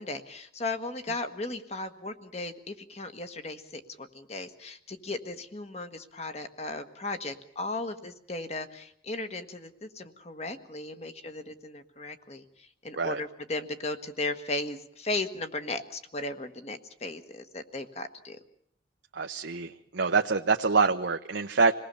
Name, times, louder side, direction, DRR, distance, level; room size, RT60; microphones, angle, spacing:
voice 1, 0.0-18.4, left 2 dB, 35° left, 8 dB, 1.5 m, -36 dB
voice 2, 19.1-21.7, right 4 dB, 85° right, 4 dB, 0.9 m, -25 dB
27.0 x 19.0 x 6.9 m, 0.69 s
head